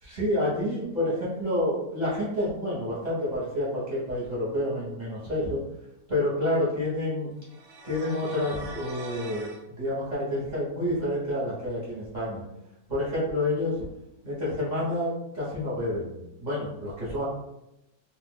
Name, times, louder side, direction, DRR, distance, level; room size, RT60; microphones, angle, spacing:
voice 1, 0.0-5.6 6.1-7.3 7.8-12.4 12.9-13.8 14.2-17.2, left 1 dB, 30° right, -9 dB, 0.9 m, -29 dB
sound 1, 7.4-9.6, right 2 dB, 70° right, 0.8 m, -42 dB
2.5 x 2.4 x 3.6 m, 0.88 s
omnidirectional pair, 1.8 m